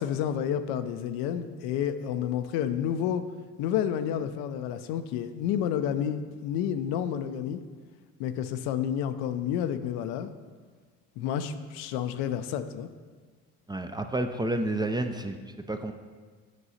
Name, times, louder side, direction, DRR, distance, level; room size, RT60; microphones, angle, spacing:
voice 1, 0.0-3.2 3.6-7.6 8.2-10.3 11.2-12.9, left 9 dB, 75° left, 10 dB, 0.6 m, -30 dB
voice 2, 13.7-15.4 15.7-15.9, right 1 dB, 10° right, 6 dB, 0.4 m, -29 dB
8.1 x 4.7 x 4.1 m, 1.5 s
supercardioid pair, 70°, 37 cm